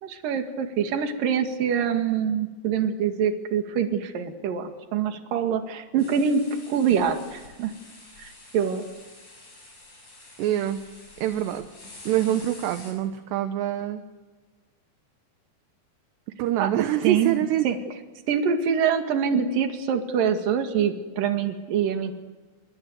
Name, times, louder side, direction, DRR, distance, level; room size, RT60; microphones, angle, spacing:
voice 1, 0.0-6.4 6.7-7.7 8.2-8.9 16.6-16.7 17.0-17.4 17.6-17.8 18.3-22.1, right 7 dB, 55° right, 6 dB, 3.3 m, -25 dB
sound 1, 6.0-12.9, left 2 dB, 35° left, 8.4 m, -48 dB
voice 2, 10.4-10.8 11.2-11.7 12.1-14.0 16.4-17.7, right 12 dB, 75° right, 9 dB, 2.9 m, -25 dB
28.5 x 23.0 x 8.1 m, 1.3 s
omnidirectional pair, 5.4 m